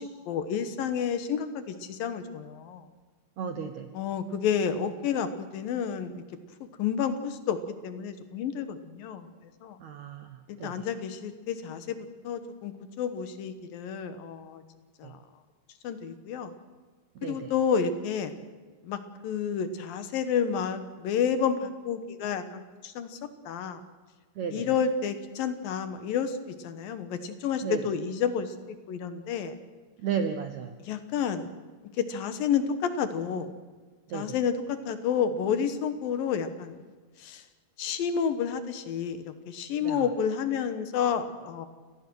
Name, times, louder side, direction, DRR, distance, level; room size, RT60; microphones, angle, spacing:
voice 1, 0.0-2.9 3.9-6.2 6.8-7.6 7.8-9.3 9.6-9.8 10.5-12.0 12.2-14.6 15.0-15.2 15.8-16.5 17.2-18.4 18.8-23.2 23.5-23.8 24.5-26.4 26.6-28.5 28.9-29.6 30.9-31.5 32.0-33.5 34.1-36.8 37.2-37.4 37.8-41.7, left 7 dB, 70° left, 10 dB, 2.8 m, -30 dB
voice 2, 3.4-3.9 9.8-10.9 15.0-15.2 17.1-17.5 24.3-24.8 27.6-27.8 30.0-30.8 34.1-34.4 39.8-40.1, right 7 dB, 75° right, 8 dB, 1.7 m, -34 dB
28.5 x 19.0 x 6.3 m, 1.4 s
omnidirectional pair, 4.6 m